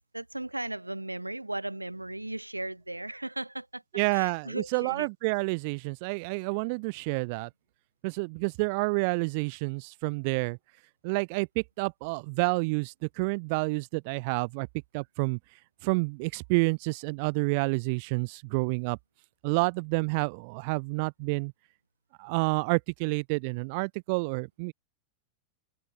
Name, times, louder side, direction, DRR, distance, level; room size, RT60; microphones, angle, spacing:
voice 1, 0.1-3.8 4.1-5.1, right 1 dB, 85° right, 2.4 m, -36 dB
voice 2, 3.9-7.5 8.0-10.6 11.0-14.7 14.9-15.4 15.8-19.0 19.4-21.5 22.2-24.7, right 31 dB, 45° right, 1.6 m, -29 dB
open air
figure-of-eight pair, 90°, 0 cm